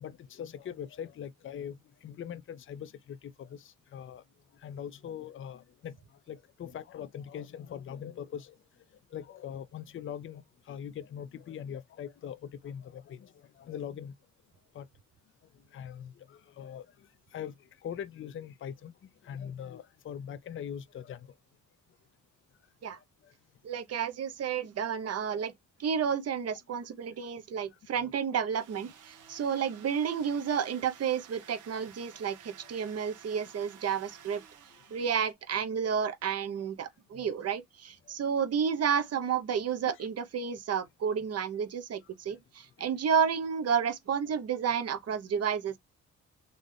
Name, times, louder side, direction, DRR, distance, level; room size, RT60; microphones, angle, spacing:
voice 1, 0.0-4.2 4.6-5.9 6.3-8.5 9.1-10.4 10.7-13.3 13.6-14.1 14.7-14.9 15.7-16.9 17.3-17.5 17.8-18.9 19.2-21.3 28.0-28.1 35.0-35.1 37.1-37.3 39.9-40.0 42.8-42.9, left 9 dB, 45° left, 0.6 m, -41 dB
voice 2, 23.6-25.5 25.8-34.4 34.9-45.8, right 7 dB, 55° right, 1.0 m, -31 dB
sound 1, 28.5-35.3, right 8 dB, 80° right, 1.4 m, -54 dB
4.0 x 3.3 x 3.4 m
cardioid pair, 90°, 30 cm